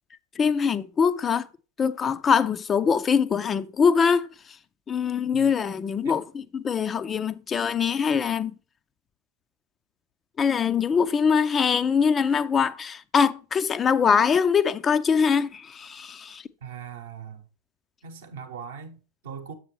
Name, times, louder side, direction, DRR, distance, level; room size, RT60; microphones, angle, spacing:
voice 1, 0.4-1.5 1.8-4.6 4.9-8.5 10.4-16.5, left 6 dB, 20° left, 0.3 m, -23 dB
voice 2, 16.6-17.5 18.0-19.5, right 7 dB, 60° right, 0.8 m, -40 dB
7.3 x 6.2 x 3.0 m
figure-of-eight pair, 90°, 0 cm